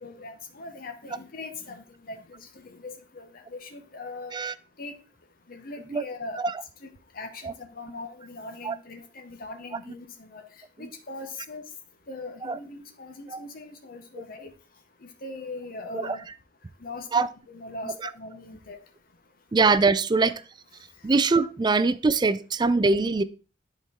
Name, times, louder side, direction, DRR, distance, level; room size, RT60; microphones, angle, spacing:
voice 1, 0.0-4.3 4.8-4.9 5.5-6.4 6.8-10.4 10.8-11.7 12.1-14.5 15.0-16.2 16.8-18.8 20.2-20.3, left 2 dB, 55° left, 1.1 m, -40 dB
voice 2, 19.5-20.4 21.0-23.2, right 4 dB, 25° right, 0.4 m, -22 dB
11.0 x 4.4 x 3.6 m
head